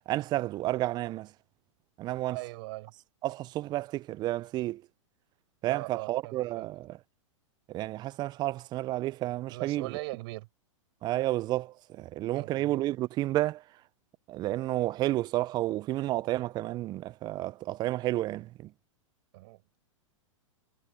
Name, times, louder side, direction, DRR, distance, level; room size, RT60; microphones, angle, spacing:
voice 1, 0.1-1.3 2.0-2.4 3.2-4.8 5.6-7.0 7.7-9.9 11.0-13.6 14.3-18.7, right 16 dB, 25° right, 0.4 m, -31 dB
voice 2, 2.3-2.9 5.7-6.7 9.5-10.5 12.3-12.7 19.3-19.8, right 22 dB, 50° right, 6.3 m, -40 dB
hypercardioid pair, 110°, 17 cm